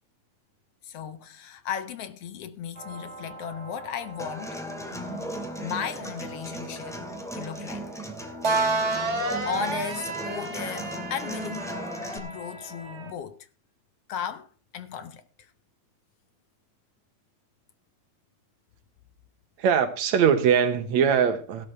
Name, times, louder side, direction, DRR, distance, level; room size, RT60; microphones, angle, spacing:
voice 1, 0.8-4.6 5.6-7.0 7.3-7.8 8.9-9.1 9.4-11.8 12.1-13.4 14.1-14.5 14.7-15.2, left 8 dB, 65° left, 1.7 m, -35 dB
sound 1, 2.8-13.1, right 3 dB, 30° right, 1.4 m, -33 dB
Human voice / Acoustic guitar, 4.2-12.2, equal, ahead, 1.6 m, -37 dB
voice 2, 19.6-21.7, right 7 dB, 70° right, 2.3 m, -21 dB
16.0 x 12.5 x 3.3 m
omnidirectional pair, 3.6 m